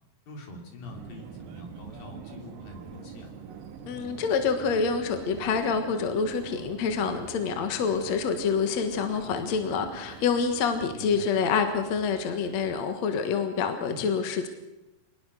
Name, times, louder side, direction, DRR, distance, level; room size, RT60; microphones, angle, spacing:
voice 1, 0.3-3.3 11.0-11.3 13.9-14.1, left 2 dB, 75° left, 2 dB, 5.2 m, -44 dB
Subway metro underground, 0.8-12.8, right 7 dB, 70° right, 3.1 m, -44 dB
voice 2, 3.9-14.5, left 5 dB, 55° left, 7 dB, 2.5 m, -27 dB
25.0 x 20.0 x 6.5 m, 1.0 s
omnidirectional pair, 4.1 m